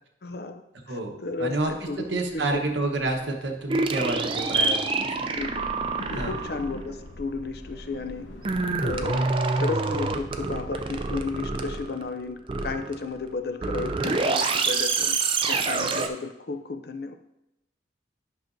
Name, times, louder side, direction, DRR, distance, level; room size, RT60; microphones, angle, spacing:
voice 1, 0.2-0.6 0.9-2.7 5.4-5.7 6.2-8.3 8.8-15.2 15.5-17.1, left 3 dB, 55° left, 7 dB, 0.5 m, -33 dB
voice 2, 0.9-5.3 6.1-6.3, right 2 dB, 90° right, 2 dB, 1.1 m, -29 dB
sound 1, 1.6-10.9, left 1 dB, 85° left, 0.8 m, -44 dB
sound 2, 3.7-6.7 8.4-12.1 12.5-13.2 13.6-16.1, right 3 dB, 30° right, 0.4 m, -27 dB
10.5 x 5.8 x 2.6 m, 0.87 s
head